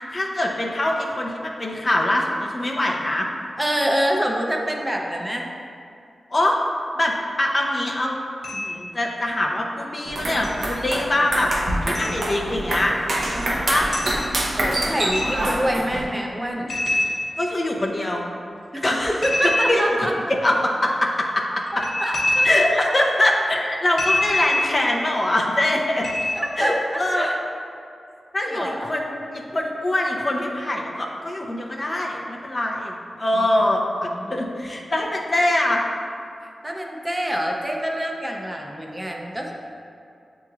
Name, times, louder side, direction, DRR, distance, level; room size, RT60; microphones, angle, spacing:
voice 1, 0.1-3.3 6.3-6.6 7.0-8.2 8.5-11.5 11.8-12.9 13.7-13.9 14.8-15.3 17.4-18.2 18.8-19.8 20.3-21.8 22.4-26.1 26.6-27.3 28.3-35.8, left 1 dB, 40° left, -1 dB, 0.5 m, -23 dB
voice 2, 3.6-5.5 13.3-13.7 14.6-16.8 18.7-20.1 21.7-22.9 26.4-26.7 27.1-27.4 28.5-28.9 34.0-34.5 36.6-39.5, equal, 15° right, 0 dB, 0.5 m, -26 dB
sound 1, 8.4-8.8 10.4-10.5 11.9-12.2 13.3-13.5 13.9-14.2 15.1-15.5 16.7-17.7 19.2-20.1 21.7-22.9 24.0-24.8 26.0-26.6, left 1 dB, 80° left, 1.1 m, -25 dB
sound 2, 10.1-16.0, right 1 dB, 65° right, 0.7 m, -26 dB
7.1 x 3.1 x 2.4 m, 2.5 s
cardioid pair, 55°, 0 cm